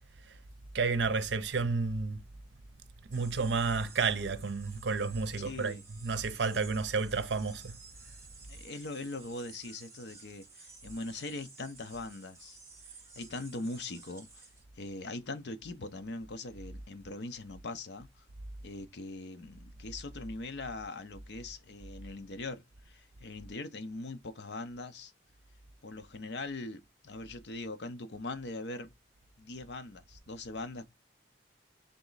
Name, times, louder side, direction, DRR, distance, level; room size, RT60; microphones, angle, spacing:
voice 1, 0.7-2.2 3.1-7.7, right 4 dB, 70° right, 0.6 m, -31 dB
sound 1, 3.1-14.6, right 4 dB, 15° right, 1.7 m, -54 dB
voice 2, 5.4-5.8 8.5-12.6 12.9-14.5 14.8-18.2 18.6-25.1 25.8-28.9 29.4-30.9, left 2 dB, 65° left, 0.6 m, -41 dB
3.5 x 3.0 x 3.9 m
head